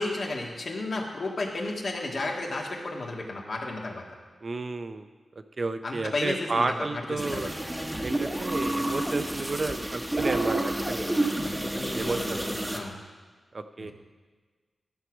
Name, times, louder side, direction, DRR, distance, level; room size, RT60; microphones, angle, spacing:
voice 1, 0.0-4.0 5.8-7.5 11.4-13.0, left 2 dB, 60° left, -1 dB, 1.7 m, -33 dB
voice 2, 4.4-5.1 5.6-7.5 8.0-11.1 12.0-12.5 13.5-13.9, right 3 dB, 45° right, 9 dB, 0.5 m, -31 dB
sound 1, 7.2-12.8, right 1 dB, 10° right, 1.0 m, -29 dB
13.0 x 4.7 x 6.1 m, 1.4 s
wide cardioid pair, 90°, 0 cm